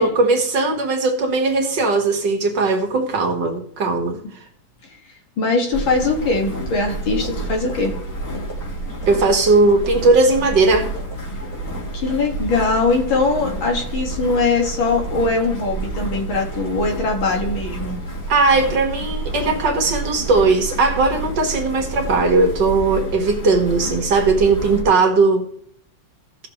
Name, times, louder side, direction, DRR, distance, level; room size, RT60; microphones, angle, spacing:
voice 1, 0.0-4.2 9.1-10.9 18.3-25.5, right 3 dB, 65° right, 2.2 m, -18 dB
voice 2, 5.4-8.0 11.9-18.0, left 3 dB, 80° left, 2.9 m, -21 dB
sound 1, 5.7-24.8, right 2 dB, 40° left, 3.8 m, -29 dB
sound 2, 7.1-7.3 7.7-7.9 8.3-8.6 9.0-9.2 9.7-9.9 10.3-10.5 11.0-11.1 11.5-11.8 12.1-12.3 12.7-12.9 13.2-13.5 13.8-14.0 14.4-14.5 14.9-15.1 15.4-15.6 16.0-16.2 16.5-16.7 17.1-17.7 18.2-18.4, right 2 dB, 15° left, 3.0 m, -38 dB
17.0 x 6.6 x 3.2 m
omnidirectional pair, 2.2 m